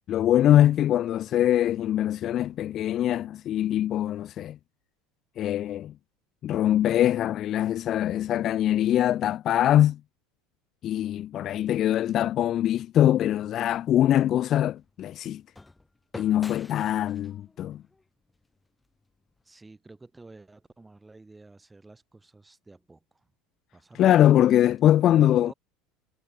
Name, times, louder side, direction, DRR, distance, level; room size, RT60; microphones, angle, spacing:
voice 1, 0.1-4.6 5.4-5.9 6.4-10.0 10.8-15.4 16.1-17.8 24.0-25.5, left 12 dB, 35° left, 0.4 m, -23 dB
sound 1, 13.3-19.5, left 2 dB, 5° left, 4.9 m, -49 dB
voice 2, 19.4-23.3 23.7-25.5, right 3 dB, 10° right, 6.7 m, -50 dB
cardioid pair, 165°, 0 cm